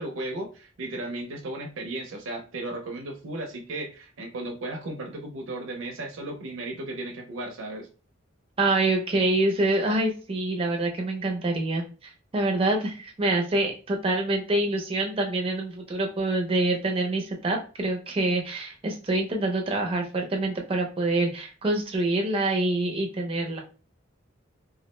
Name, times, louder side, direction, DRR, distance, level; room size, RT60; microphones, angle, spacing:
voice 1, 0.0-7.9, right 2 dB, 80° right, 2 dB, 0.5 m, -35 dB
voice 2, 8.6-23.6, right 2 dB, 25° right, 2 dB, 0.4 m, -26 dB
2.3 x 2.0 x 3.0 m, 0.37 s
head